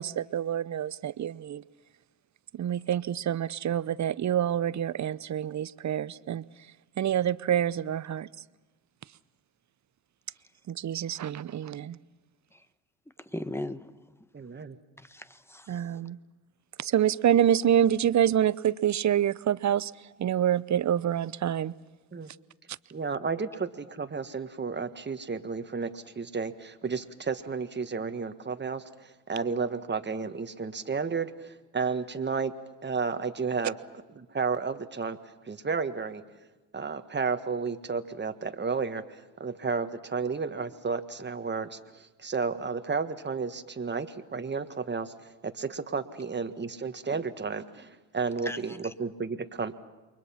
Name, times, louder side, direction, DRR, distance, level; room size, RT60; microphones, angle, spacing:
voice 1, 0.0-1.6 2.5-6.4 7.0-8.3 10.7-12.0 15.7-16.2 16.8-19.9 20.2-21.7, right 10 dB, 40° right, 19 dB, 0.8 m, -27 dB
voice 2, 13.2-13.9 15.0-15.8 48.4-48.9, left 1 dB, 5° left, 12 dB, 1.3 m, -38 dB
voice 3, 14.3-14.8 22.1-22.3 22.9-32.5 32.8-33.8 34.1-35.2 35.5-36.2 36.7-39.0 39.4-45.1 45.4-49.7, right 5 dB, 25° right, 9 dB, 1.6 m, -32 dB
29.0 x 23.0 x 5.9 m, 1.2 s
hypercardioid pair, 55°, 44 cm